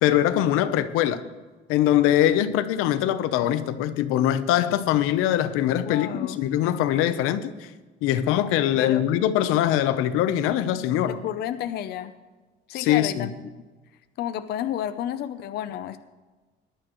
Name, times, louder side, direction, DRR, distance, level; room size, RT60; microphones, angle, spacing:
voice 1, 0.0-1.2 1.7-7.7 8.0-11.2 12.7-13.3, left 12 dB, 90° left, 0.8 m, -22 dB
voice 2, 5.9-6.4 8.8-9.0 11.1-12.1 12.7-13.5 14.2-16.0, left 11 dB, 50° left, 0.6 m, -31 dB
19.5 x 11.5 x 3.1 m
cardioid pair, 160°, 21 cm